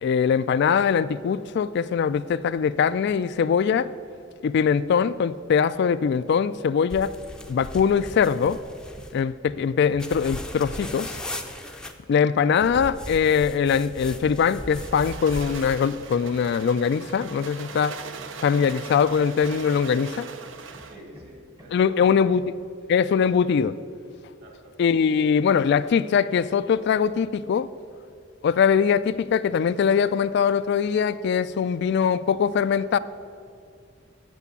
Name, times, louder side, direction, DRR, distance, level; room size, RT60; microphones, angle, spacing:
voice 1, 0.0-3.9 4.4-7.1 7.5-8.6 9.1-11.1 12.1-17.9 18.4-20.3 21.7-22.4 22.9-23.8 24.8-27.7 28.4-33.0, left 6 dB, 60° left, 0.3 m, -22 dB
sound 1, 6.9-9.2 10.0-11.9 12.6-15.8, left 1 dB, 5° left, 0.5 m, -38 dB
Hammer, 7.3-7.6 7.9-11.5 13.2-20.1 20.7-22.6, equal, 20° right, 0.9 m, -48 dB
sound 2, 14.5-21.0, right 5 dB, 70° right, 0.7 m, -40 dB
voice 2, 20.8-22.2 22.8-22.9 23.3-23.4 24.4-24.8 32.7-33.0, right 1 dB, 55° right, 2.3 m, -48 dB
8.3 x 7.1 x 8.2 m
head